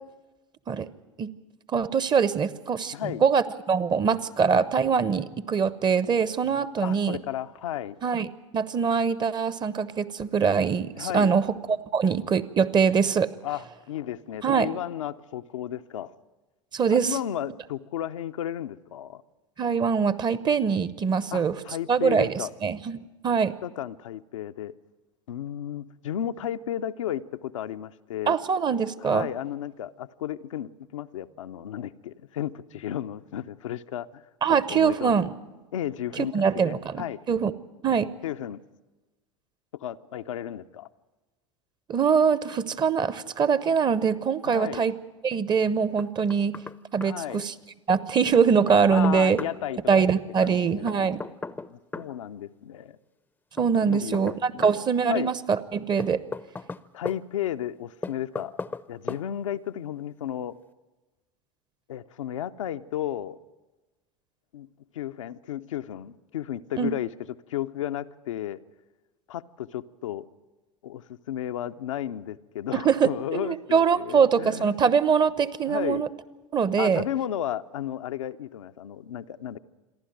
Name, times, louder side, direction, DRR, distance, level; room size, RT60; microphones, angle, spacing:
voice 1, 1.7-7.2 8.0-8.3 8.5-11.5 11.9-13.3 14.4-14.7 16.7-17.2 19.6-21.5 21.9-23.5 28.3-29.3 34.4-35.3 36.2-37.5 37.8-38.1 41.9-44.9 45.2-46.5 46.9-47.5 47.9-49.4 49.9-51.2 53.6-56.2 66.8-66.9 72.7-76.1 76.5-77.0, right 6 dB, 25° right, 0.9 m, -23 dB
voice 2, 2.9-3.2 6.8-8.0 11.0-11.3 13.4-16.1 16.9-19.2 21.3-22.5 23.6-24.7 25.3-28.3 29.0-34.2 34.7-35.2 35.7-37.2 38.2-38.6 39.7-40.9 44.4-44.9 47.0-47.4 48.9-51.2 51.7-53.0 53.8-55.3 56.9-58.5 58.9-60.6 61.9-63.4 64.5-64.7 64.9-67.1 67.5-68.6 69.3-70.3 70.8-74.8 75.7-76.1 76.8-79.6, left 11 dB, 70° left, 0.6 m, -33 dB
Knock, 46.0-46.8 47.0-47.1 48.3-49.6 50.9-52.1 53.6-54.8 56.0-57.2 58.0-58.8 59.1-59.2, left 3 dB, 10° left, 0.6 m, -36 dB
28.0 x 11.5 x 9.1 m
figure-of-eight pair, 80°, 17 cm